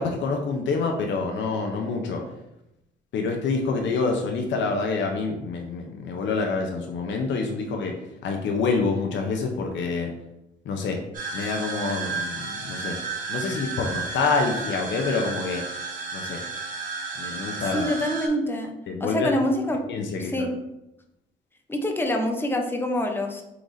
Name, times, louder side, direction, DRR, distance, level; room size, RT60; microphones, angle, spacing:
voice 1, 0.0-2.2 3.1-8.0 8.2-10.1 10.6-11.0 11.3-13.0 13.3-15.6 16.1-16.4 17.2-17.9 18.9-19.3 19.9-20.5, left 4 dB, 65° left, 2 dB, 0.7 m, -27 dB
sound 1, 11.1-18.3, right 4 dB, 45° right, 1.5 m, -33 dB
voice 2, 17.7-18.7 19.0-19.8 20.2-20.5 21.7-23.4, left 1 dB, 10° left, 3 dB, 0.7 m, -25 dB
4.7 x 3.9 x 2.6 m, 0.88 s
cardioid pair, 90°, 20 cm